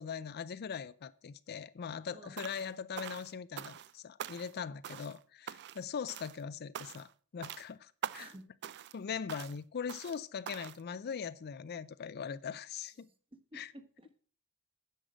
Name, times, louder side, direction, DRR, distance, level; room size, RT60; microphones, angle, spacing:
voice 1, 0.0-8.3 8.9-13.1 13.5-13.7, left 6 dB, 45° left, 0.4 m, -41 dB
voice 2, 2.1-2.4 8.1-8.5 13.3-14.2, right 1 dB, 25° right, 1.3 m, -53 dB
sound 1, 2.4-2.7 3.0-3.9 4.2-4.6 4.8-5.2 5.5-5.8 6.1-6.4 6.7-7.1 7.4-7.7 8.0-8.4 8.6-9.0 9.3-9.6 9.9-10.2 10.5-10.8, right 9 dB, 50° right, 0.4 m, -44 dB
10.0 x 6.5 x 7.4 m
head